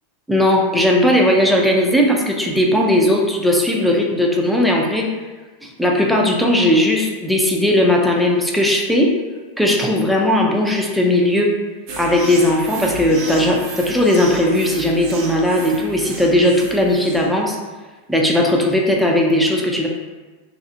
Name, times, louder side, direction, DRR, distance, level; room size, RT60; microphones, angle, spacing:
voice 1, 0.3-5.1 5.6-9.1 9.6-11.5 12.0-17.6 18.1-19.9, left 1 dB, ahead, -1 dB, 0.4 m, -17 dB
sound 1, 11.9-17.4, right 2 dB, 55° right, 0.5 m, -33 dB
2.4 x 2.0 x 2.5 m, 1.3 s
hypercardioid pair, 120°, 0 cm